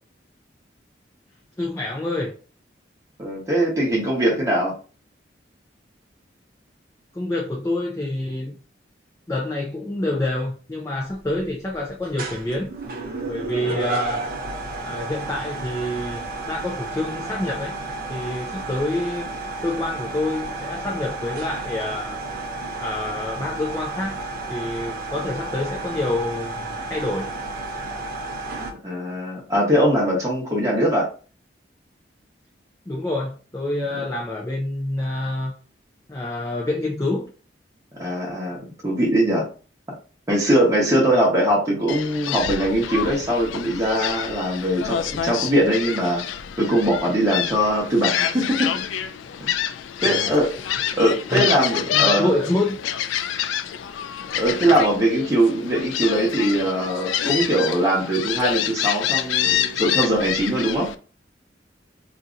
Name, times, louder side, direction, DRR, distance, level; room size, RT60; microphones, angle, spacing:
voice 1, 1.6-2.3 7.1-8.5 9.3-12.7 13.3-14.2 14.8-17.8 18.1-19.3 19.6-22.2 22.8-24.2 24.5-27.3 32.9-35.5 36.1-37.3 50.0-50.3 51.3-51.5 51.9-52.7, left 1 dB, 15° left, 0.4 m, -27 dB
voice 2, 3.2-4.7 13.7-13.8 28.8-31.1 38.0-39.5 40.3-46.2 46.6-48.8 49.4-49.5 50.0-50.5 50.9-52.3 54.3-60.9, right 1 dB, 15° right, 0.9 m, -21 dB
sound 1, 11.0-28.7, right 2 dB, 50° right, 0.5 m, -32 dB
Gull seagull, 41.9-60.9, left 10 dB, 90° left, 0.3 m, -27 dB
2.7 x 2.5 x 3.8 m
head